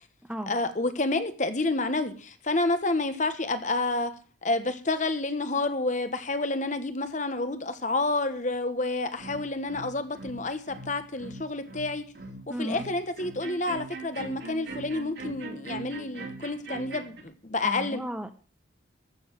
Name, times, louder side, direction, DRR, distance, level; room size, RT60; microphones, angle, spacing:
voice 1, 0.5-4.1 4.4-12.0 12.5-18.0, left 2 dB, 40° left, 10 dB, 1.2 m, -29 dB
sound 1, 9.2-17.2, right 3 dB, 55° right, 2.7 m, -41 dB
voice 2, 12.5-12.9 17.6-18.3, right 1 dB, 5° right, 8 dB, 0.9 m, -34 dB
14.0 x 7.1 x 7.4 m, 0.39 s
head